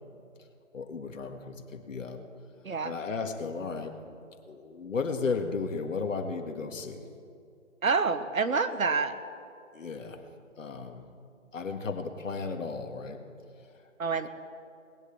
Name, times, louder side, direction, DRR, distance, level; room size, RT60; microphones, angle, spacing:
voice 1, 0.7-2.2 2.8-3.9 4.5-7.0 9.7-10.3 10.6-11.0 11.5-13.2, left 4 dB, 70° left, 5 dB, 1.9 m, -34 dB
voice 2, 7.8-9.2 14.0-14.3, right 4 dB, 90° right, 11 dB, 1.3 m, -27 dB
19.5 x 8.1 x 8.0 m, 2.4 s
hypercardioid pair, 150°, 40 cm